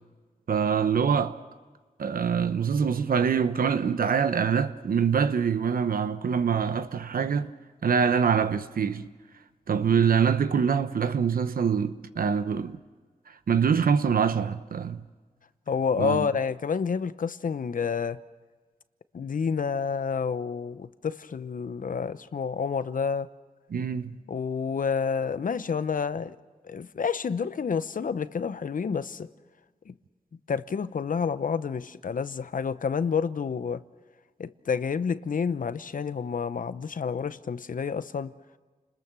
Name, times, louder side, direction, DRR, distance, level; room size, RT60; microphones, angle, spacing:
voice 1, 0.5-1.4 2.0-7.5 7.8-9.1 9.7-12.8 13.5-15.0 16.0-16.3 23.7-24.2, right 6 dB, 85° right, 1.0 m, -24 dB
voice 2, 15.7-18.2 19.1-23.3 24.3-26.4 26.6-29.3 29.9-30.0 30.5-33.8 34.4-38.3, left 6 dB, 70° left, 0.8 m, -29 dB
30.0 x 20.5 x 6.1 m
wide cardioid pair, 70°, 14 cm